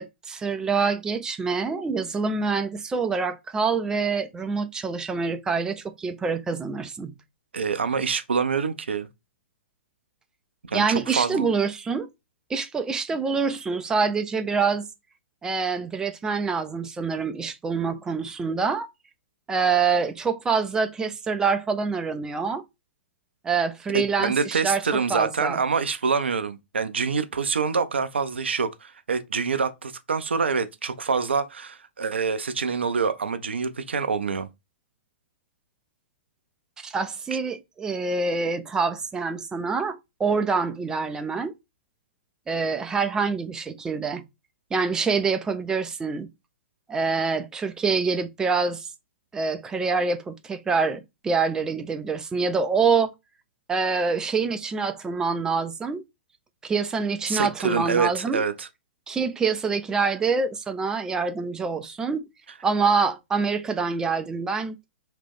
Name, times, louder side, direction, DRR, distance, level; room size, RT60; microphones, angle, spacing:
voice 1, 0.0-7.1 10.7-12.1 12.5-14.9 15.4-18.9 19.5-22.6 23.4-24.8 25.1-25.6 36.8-41.5 42.5-44.2 44.7-46.3 46.9-48.9 49.3-53.1 53.7-56.0 56.6-58.4 59.1-62.2 62.6-64.8, right 5 dB, 10° right, 0.4 m, -26 dB
voice 2, 7.5-9.1 10.7-11.5 23.9-34.5 37.3-37.4 57.3-58.7, right 5 dB, 70° right, 0.5 m, -26 dB
3.2 x 2.8 x 3.5 m
figure-of-eight pair, 110°, 6 cm